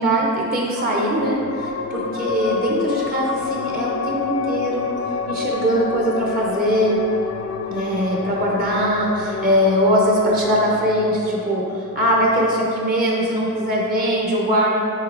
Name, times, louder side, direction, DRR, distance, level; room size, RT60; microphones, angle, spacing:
voice 1, 0.0-1.4 1.9-4.9 5.3-7.0 7.7-11.6 11.9-14.8, equal, 45° right, -3 dB, 0.8 m, -21 dB
sound 1, 0.7-13.6, left 6 dB, 80° left, 0.4 m, -29 dB
8.3 x 3.3 x 3.8 m, 2.6 s
head